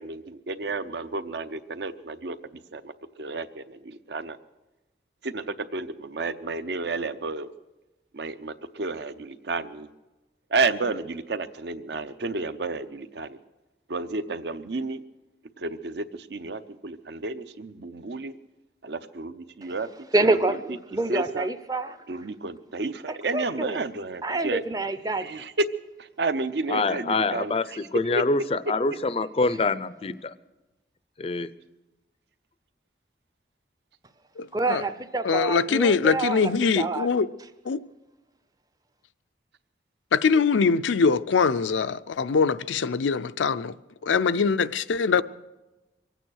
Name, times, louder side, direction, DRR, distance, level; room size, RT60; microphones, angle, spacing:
voice 1, 0.0-2.4 2.7-2.9 3.2-4.4 5.2-7.5 8.1-9.9 10.5-13.4 13.9-15.0 15.6-16.0 16.3-18.3 18.8-19.0 19.6-19.9 20.3-20.6 21.1-21.5 22.1-24.6 25.2-25.6 26.2-27.6, right 3 dB, 65° right, 0.7 m, -31 dB
voice 2, 20.1-22.0 23.1-23.8 24.2-25.4 34.5-36.5 36.8-37.1, right 2 dB, 20° right, 0.5 m, -27 dB
voice 3, 26.7-30.3 31.2-31.5, left 3 dB, 30° left, 0.4 m, -26 dB
voice 4, 34.4-34.8 35.2-37.3 37.6-37.8 40.1-43.8 44.0-45.2, left 5 dB, 85° left, 0.5 m, -23 dB
24.0 x 9.1 x 6.3 m
head